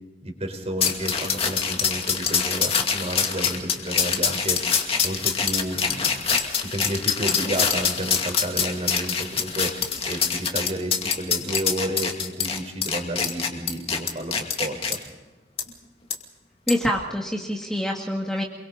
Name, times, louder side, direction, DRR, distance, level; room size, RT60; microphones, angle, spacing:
voice 1, 0.2-4.6 5.0-6.3 6.6-9.7 10.1-15.0, right 1 dB, 35° right, 4 dB, 4.5 m, -31 dB
sound 1, 0.8-15.0 15.6-15.7 16.1-16.2 16.7-16.9, left 6 dB, 30° left, 2.4 m, -25 dB
voice 2, 16.7-18.4, equal, 5° left, -1 dB, 2.1 m, -26 dB
28.0 x 23.0 x 4.1 m, 1.2 s
head